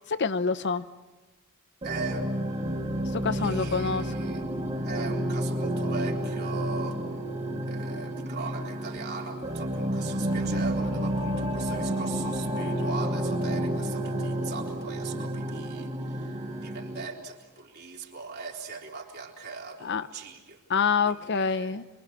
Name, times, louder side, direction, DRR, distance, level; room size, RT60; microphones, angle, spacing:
voice 1, 0.1-0.8 3.1-4.0 19.8-20.1 20.7-21.8, left 5 dB, 55° left, 13 dB, 0.7 m, -26 dB
sound 1, 1.8-17.0, right 1 dB, 30° right, 2.5 m, -30 dB
voice 2, 1.8-2.4 3.3-4.4 4.8-7.0 7.6-20.6 21.0-21.8, right 4 dB, 50° right, 0 dB, 3.8 m, -40 dB
28.0 x 23.5 x 7.3 m, 1.2 s
head